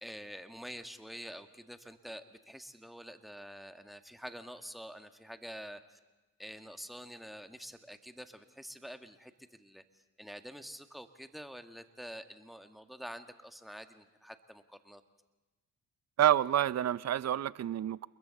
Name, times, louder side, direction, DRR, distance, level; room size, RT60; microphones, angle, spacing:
voice 1, 0.0-6.0 6.4-15.0, equal, ahead, 7 dB, 1.8 m, -47 dB
voice 2, 16.2-18.1, right 11 dB, 40° right, 20 dB, 0.7 m, -28 dB
29.0 x 21.5 x 4.2 m, 1.2 s
hypercardioid pair, 45°, 40 cm